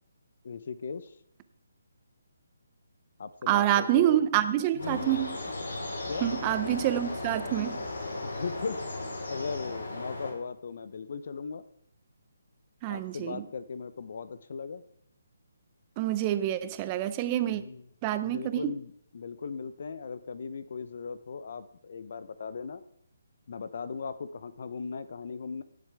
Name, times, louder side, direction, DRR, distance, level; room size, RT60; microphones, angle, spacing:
voice 1, 0.4-1.1 3.2-4.3 4.7-5.1 6.1-6.3 8.2-8.8 9.3-11.6 12.9-14.8 17.5-17.9 18.2-22.8 23.5-25.6, left 5 dB, 55° left, 0.8 m, -38 dB
voice 2, 3.5-5.4 6.2-7.8 12.8-13.4 16.0-17.6 18.0-18.7, right 12 dB, 25° right, 0.6 m, -27 dB
sound 1, 4.8-10.3, left 2 dB, 75° left, 4.3 m, -36 dB
17.0 x 7.6 x 3.5 m
hypercardioid pair, 160°, 0 cm